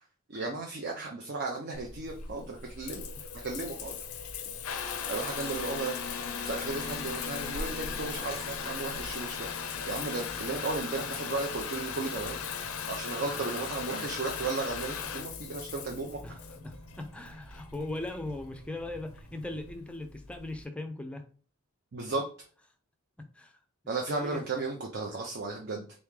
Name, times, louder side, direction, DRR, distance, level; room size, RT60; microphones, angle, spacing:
voice 1, 0.3-3.1 3.3-4.0 5.1-6.0 6.4-12.4 12.9-16.2 21.9-22.3 23.9-25.8, right 3 dB, 50° right, 0.6 m, -35 dB
Water tap faucet / Bathtub (filling or washing) / Trickle dribble, 1.7-20.6, left 6 dB, 80° left, 0.5 m, -38 dB
voice 2, 2.8-3.3 4.5-4.7 13.3-13.6 16.2-21.3 23.2-23.5 23.8-24.4, left 2 dB, 5° left, 0.4 m, -40 dB
sound 1, 6.6-19.8, equal, 80° right, 1.3 m, -50 dB
3.6 x 3.0 x 3.6 m
head